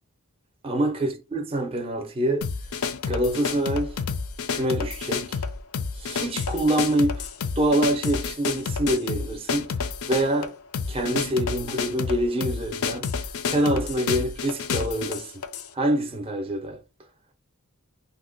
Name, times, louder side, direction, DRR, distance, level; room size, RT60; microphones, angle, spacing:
voice 1, 0.6-2.5 3.1-4.0 4.5-5.4 6.0-7.3 7.6-9.7 10.1-10.5 10.9-13.1 13.5-15.3 15.7-16.8, right 1 dB, 25° right, 0.5 m, -25 dB
sound 1, 2.4-15.7, left 5 dB, 70° left, 0.4 m, -30 dB
2.7 x 2.1 x 3.8 m
head